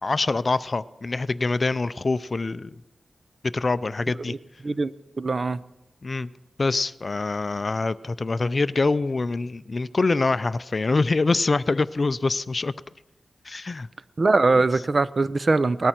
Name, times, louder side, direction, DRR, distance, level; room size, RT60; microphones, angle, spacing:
voice 1, 0.0-2.7 3.5-4.3 6.0-6.3 6.6-12.7 13.5-13.9, left 3 dB, 40° left, 15 dB, 0.4 m, -25 dB
voice 2, 4.6-5.6 14.2-15.9, right 3 dB, 45° right, 15 dB, 0.6 m, -22 dB
19.0 x 13.5 x 4.4 m, 0.99 s
wide cardioid pair, 100°, 0 cm